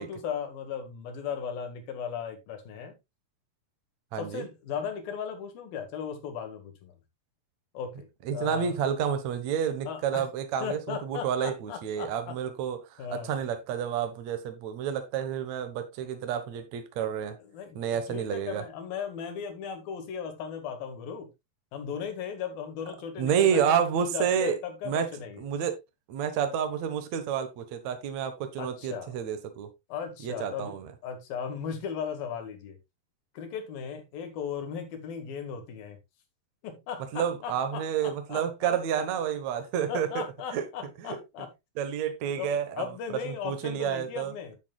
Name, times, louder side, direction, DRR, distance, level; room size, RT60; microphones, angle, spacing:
voice 1, 0.0-2.9 4.2-7.0 7.7-8.1 8.3-8.8 9.9-10.3 10.6-12.4 13.0-13.4 17.4-21.3 21.7-25.5 28.6-29.2 29.9-30.7 31.0-32.8 33.4-36.0 36.6-38.7 39.9-41.5 42.4-44.6, left 7 dB, 75° left, 3.7 m, -37 dB
voice 2, 4.1-4.5 8.3-17.4 17.7-18.6 23.2-24.6 24.8-25.1 25.4-25.8 26.1-29.7 30.2-30.9 37.1-40.1 40.5-40.7 41.0-41.2 41.8-42.9 43.2-44.3, right 8 dB, 60° right, 2.1 m, -29 dB
10.5 x 9.1 x 2.3 m
omnidirectional pair, 4.2 m